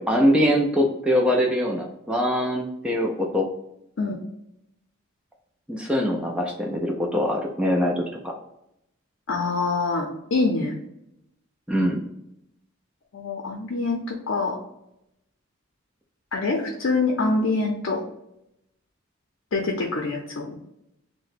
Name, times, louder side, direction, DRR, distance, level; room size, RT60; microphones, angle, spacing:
voice 1, 0.0-3.5 5.7-8.3 11.7-12.0, equal, 5° right, 0 dB, 0.4 m, -23 dB
voice 2, 9.3-10.7 13.1-14.6 16.3-18.0 19.5-20.6, left 3 dB, 70° left, 1 dB, 0.5 m, -25 dB
2.8 x 2.1 x 4.0 m, 0.81 s
head